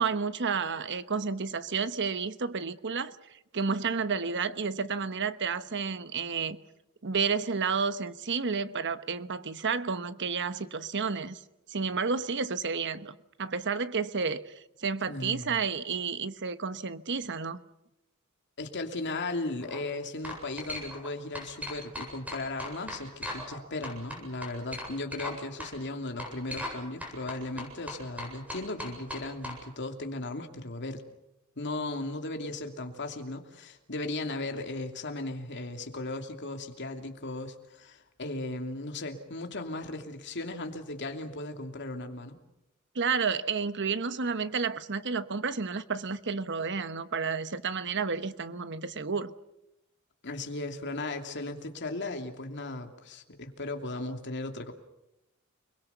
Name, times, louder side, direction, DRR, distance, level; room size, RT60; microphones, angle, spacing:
voice 1, 0.0-6.6 7.0-11.4 11.7-17.6 42.9-49.3, right 5 dB, 55° right, 1.1 m, -31 dB
voice 2, 15.1-15.6 18.6-31.0 31.6-42.4 50.2-54.7, left 2 dB, 55° left, 2.8 m, -36 dB
sound 1, 19.5-19.8 20.2-21.1 21.3-23.6 23.8-25.3 25.6-25.7 26.2-26.8 27.0-29.6, left 1 dB, 5° right, 8.0 m, -38 dB
29.0 x 21.5 x 7.0 m
head